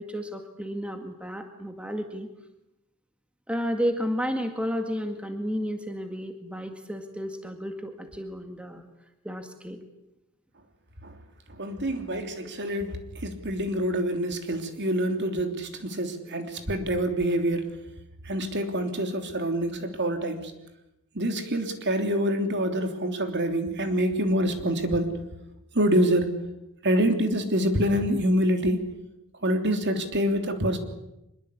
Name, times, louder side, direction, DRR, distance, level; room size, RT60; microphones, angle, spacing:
voice 1, 0.0-2.3 3.5-8.9 9.2-9.8, equal, 5° right, 5 dB, 1.9 m, -32 dB
voice 2, 11.5-17.7 18.2-20.5 21.1-25.1 25.7-26.3 26.8-28.9 29.4-30.8, equal, 50° right, 6 dB, 3.2 m, -26 dB
25.0 x 22.5 x 8.5 m, 0.90 s
head